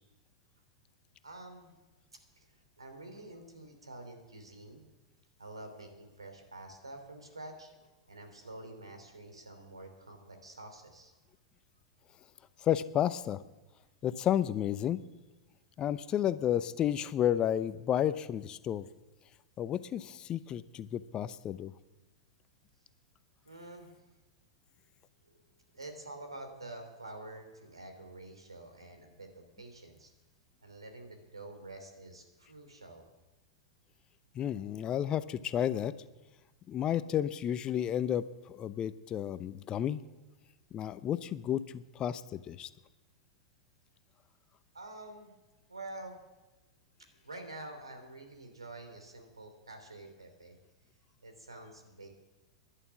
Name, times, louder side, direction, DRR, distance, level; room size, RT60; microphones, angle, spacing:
voice 1, 1.2-1.7 2.4-2.5 2.8-4.8 5.4-11.2 23.4-24.2 25.3-25.4 25.7-30.1 30.6-33.1 44.7-45.3 45.7-46.2 47.2-50.5 51.2-52.1, right 2 dB, 90° right, 6 dB, 3.2 m, -48 dB
voice 2, 12.6-13.4 14.0-15.0 15.8-18.9 19.6-21.7 34.3-35.9 36.7-40.0 40.7-42.7, left 10 dB, 30° left, 15 dB, 0.7 m, -32 dB
11.0 x 11.0 x 9.4 m, 1.1 s
hypercardioid pair, 100°, 3 cm